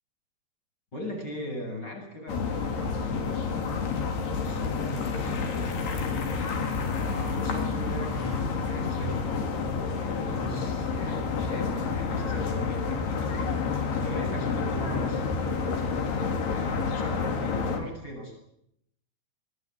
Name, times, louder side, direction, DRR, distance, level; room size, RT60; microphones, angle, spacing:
voice 1, 0.9-3.9 4.4-6.3 6.9-9.6 9.9-18.4, left 1 dB, 25° left, 3 dB, 8.7 m, -39 dB
sound 1, 2.3-17.8, left 5 dB, 90° left, 5.6 m, -29 dB
27.5 x 20.5 x 8.9 m, 0.74 s
omnidirectional pair, 4.5 m